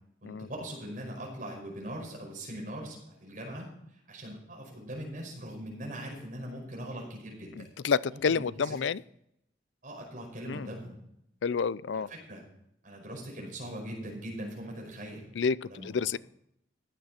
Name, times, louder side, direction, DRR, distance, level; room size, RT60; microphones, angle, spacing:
voice 1, 0.2-3.7 4.1-7.7 8.1-8.8 9.8-11.0 11.9-12.4 12.8-15.2 15.7-15.9, right 1 dB, 45° right, 0 dB, 5.3 m, -41 dB
voice 2, 7.6-9.0 10.5-10.7 11.4-12.1 15.3-16.2, left 5 dB, 80° left, 19 dB, 0.4 m, -29 dB
14.5 x 10.5 x 4.3 m, 0.75 s
head